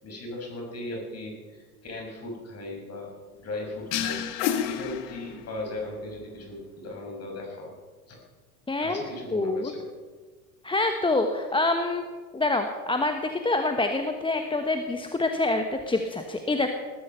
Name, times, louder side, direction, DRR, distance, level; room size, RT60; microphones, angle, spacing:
voice 1, 0.0-3.1 3.4-4.2 4.7-7.7 8.1-8.2 8.8-9.8, left 2 dB, 35° left, 0 dB, 6.4 m, -37 dB
sound 1, 3.9-5.7, left 9 dB, 60° left, 1.8 m, -29 dB
voice 2, 8.7-9.0 9.3-9.7 10.6-12.0 12.3-16.7, left 2 dB, 10° left, 5 dB, 1.2 m, -26 dB
19.5 x 13.0 x 5.6 m, 1.4 s
figure-of-eight pair, 75°, 45 cm